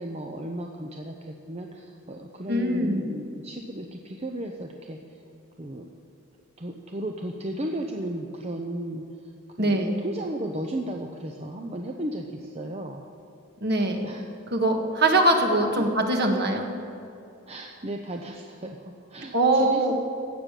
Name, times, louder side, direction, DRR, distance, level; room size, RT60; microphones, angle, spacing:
voice 1, 0.0-5.0 5.6-5.9 6.6-9.0 9.6-13.0 14.0-14.3 15.8-15.9 17.5-19.9, right 1 dB, 30° right, 2 dB, 0.7 m, -34 dB
voice 2, 2.5-3.0 9.6-10.0 13.6-14.1 14.5-16.7 19.3-19.9, right 1 dB, 50° right, 3 dB, 1.6 m, -22 dB
16.5 x 6.7 x 9.1 m, 2.6 s
head